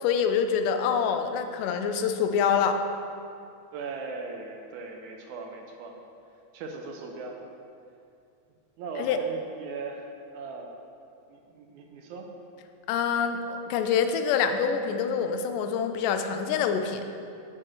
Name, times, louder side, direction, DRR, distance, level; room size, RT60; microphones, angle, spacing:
voice 1, 0.0-2.8 9.0-9.2 12.9-17.0, left 7 dB, 90° left, 7 dB, 2.2 m, -26 dB
voice 2, 3.7-5.9 6.5-7.4 8.8-10.7 11.3-12.3, right 3 dB, 75° right, 2 dB, 2.0 m, -38 dB
7.7 x 6.0 x 4.7 m, 2.5 s
omnidirectional pair, 3.6 m